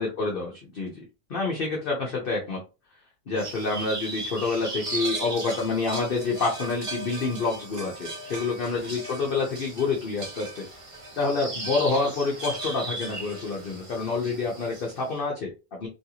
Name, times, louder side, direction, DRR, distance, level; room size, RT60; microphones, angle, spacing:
voice 1, 0.0-2.6 3.3-10.6 11.2-15.9, left 3 dB, 45° left, -1 dB, 0.8 m, -28 dB
sound 1, 3.4-15.1, right 2 dB, 30° right, 0.7 m, -37 dB
3.2 x 2.5 x 2.8 m, 0.30 s
omnidirectional pair, 1.6 m